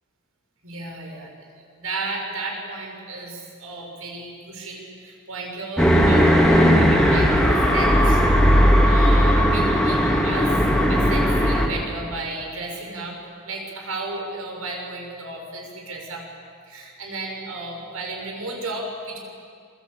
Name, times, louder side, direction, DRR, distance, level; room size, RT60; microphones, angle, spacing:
voice 1, 0.6-1.3 1.8-8.2 8.8-10.5 10.9-13.2 13.4-16.2 16.7-19.2, right 2 dB, 90° right, 1 dB, 6.3 m, -33 dB
sound 1, 5.8-11.7, equal, 5° left, 3.0 m, -17 dB
27.5 x 22.5 x 8.5 m, 2.3 s
head